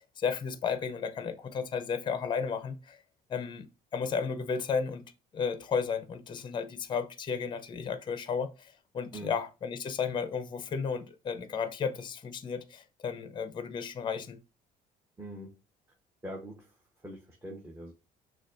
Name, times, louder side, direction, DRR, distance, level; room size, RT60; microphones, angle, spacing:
voice 1, 0.2-3.0 3.3-5.0 5.3-14.4, left 6 dB, 30° left, 0.5 m, -33 dB
voice 2, 15.2-15.5 16.2-16.7 17.0-17.9, right 1 dB, 15° right, 0.8 m, -43 dB
6.4 x 2.2 x 2.4 m
cardioid pair, 110°, 17 cm